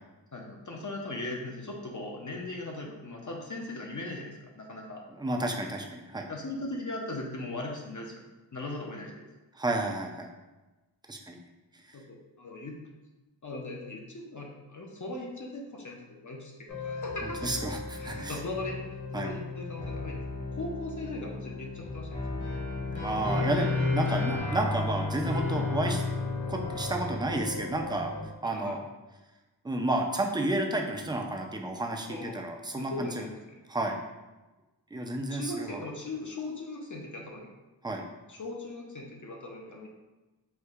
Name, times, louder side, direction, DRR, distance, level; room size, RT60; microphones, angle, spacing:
voice 1, 0.3-5.0 6.3-8.2 8.5-9.2 11.9-12.8 13.4-17.5 18.0-18.8 19.1-22.4 28.4-28.8 32.1-32.4 32.7-33.6 35.3-37.5 38.3-39.9, left 2 dB, 45° left, -1 dB, 0.6 m, -39 dB
voice 2, 5.1-6.3 9.5-10.3 11.1-11.4 11.9-12.0 17.2-18.4 19.1-19.3 23.0-26.0 26.5-28.1 28.4-28.8 29.6-33.3 33.7-34.0 34.9-35.8 37.8-38.0, right 2 dB, 10° right, 3 dB, 0.4 m, -31 dB
sound 1, 16.7-28.2, left 3 dB, 85° left, 1.3 m, -33 dB
4.4 x 2.5 x 2.4 m, 1.1 s
wide cardioid pair, 45°, 44 cm